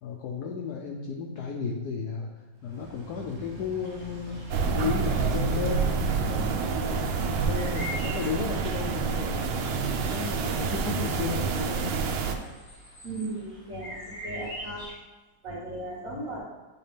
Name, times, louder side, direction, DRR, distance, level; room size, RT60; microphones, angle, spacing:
voice 1, 0.0-2.3 2.6-11.9 16.1-16.2, left 6 dB, 75° left, 1 dB, 0.9 m, -34 dB
Motorcycle, 2.6-8.6, right 6 dB, 65° right, 0.6 m, -38 dB
sound 1, 3.8-14.9, left 1 dB, 45° left, 2.6 m, -45 dB
sound 2, 4.5-12.4, right 5 dB, 90° right, 1.5 m, -28 dB
voice 2, 13.0-14.0 14.2-14.8 15.4-16.4, right 2 dB, 40° right, -6 dB, 2.2 m, -36 dB
8.5 x 3.8 x 3.4 m, 1.2 s
omnidirectional pair, 2.2 m